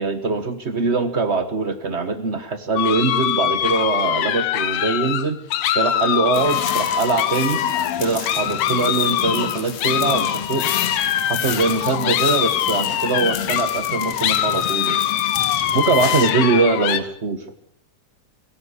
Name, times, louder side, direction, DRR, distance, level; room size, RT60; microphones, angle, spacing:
voice 1, 0.0-5.4 5.7-7.6 8.0-10.7 11.3-15.0 15.7-17.4, right 4 dB, 80° right, 9 dB, 0.6 m, -22 dB
sound 1, 2.8-17.0, left 11 dB, 75° left, 2.5 m, -23 dB
sound 2, 6.3-16.3, left 9 dB, 55° left, 2.3 m, -31 dB
17.0 x 16.0 x 9.8 m, 0.65 s
omnidirectional pair, 3.5 m